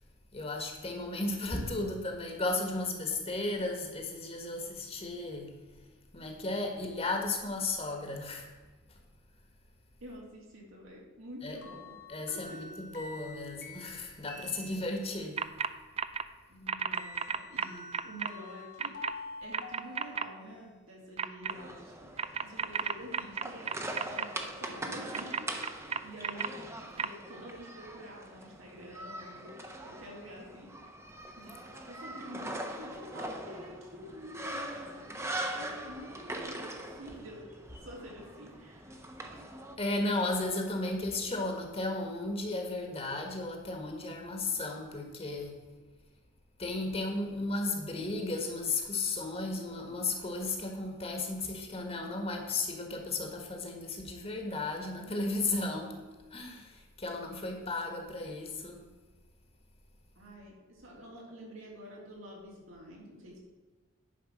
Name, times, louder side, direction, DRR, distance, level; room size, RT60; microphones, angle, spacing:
voice 1, 0.3-5.5 6.1-8.5 11.4-11.6 12.1-15.4 39.8-45.6 46.6-56.0 56.3-58.8, left 2 dB, 30° left, 3 dB, 1.6 m, -34 dB
voice 2, 10.0-12.0 12.3-12.6 16.5-19.0 19.4-21.9 22.4-25.8 26.0-26.5 27.0-29.6 29.8-30.7 31.4-31.6 31.8-38.9 60.1-63.4, equal, 80° right, -3 dB, 3.3 m, -48 dB
sound 1, 11.6-15.4 16.9-20.7, left 2 dB, 60° left, 2.1 m, -48 dB
sound 2, 15.4-15.7 16.0-16.2 16.7-18.3 18.8-19.1 19.5-20.2 21.2-21.5 22.2-24.2 25.1-26.5 27.0-27.1, right 7 dB, 30° right, 0.4 m, -32 dB
sound 3, 21.5-39.8, right 1 dB, 15° right, 0.9 m, -42 dB
10.5 x 5.1 x 6.4 m, 1.3 s
head